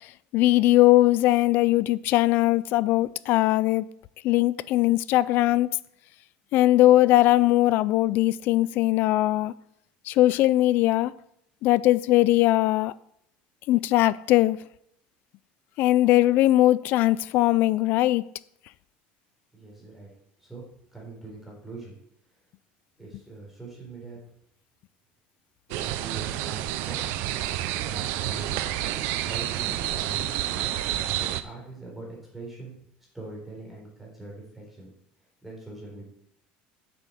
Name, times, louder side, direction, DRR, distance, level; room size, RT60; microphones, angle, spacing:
voice 1, 0.3-3.9 4.2-5.8 6.5-9.5 10.1-11.1 11.6-12.9 13.7-14.6 15.8-18.2, left 16 dB, 55° left, 0.4 m, -20 dB
voice 2, 19.5-20.1 20.4-20.7 20.9-22.0 23.0-24.2 25.7-27.1 27.8-30.7 31.2-32.8 33.1-34.9 35.4-36.0, right 2 dB, 5° right, 4.1 m, -43 dB
sound 1, 25.7-31.4, right 13 dB, 65° right, 0.7 m, -29 dB
7.5 x 7.5 x 6.5 m
cardioid pair, 150°, 4 cm